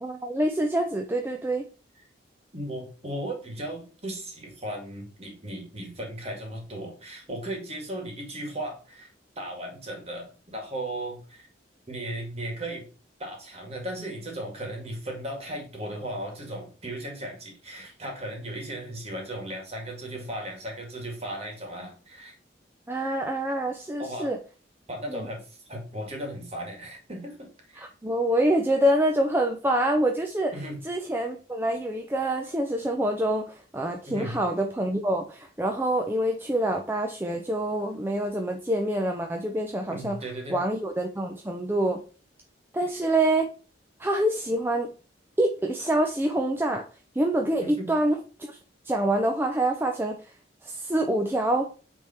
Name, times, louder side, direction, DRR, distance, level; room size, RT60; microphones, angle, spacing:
voice 1, 0.0-1.7 22.9-24.4 25.1-25.3 27.8-30.5 30.8-40.2 40.5-42.0 42.7-43.5 44.0-44.9 45.4-46.9 47.1-48.2 48.5-48.6 48.9-50.3 50.6-51.7, right 1 dB, 10° right, 3 dB, 0.5 m, -26 dB
voice 2, 2.5-9.1 9.4-11.5 11.9-12.9 13.2-22.3 24.0-24.3 24.9-27.8 30.5-30.8 34.1-34.4 39.9-40.6 47.6-47.9, right 1 dB, 35° right, 2 dB, 2.1 m, -36 dB
8.4 x 3.6 x 4.4 m, 0.37 s
head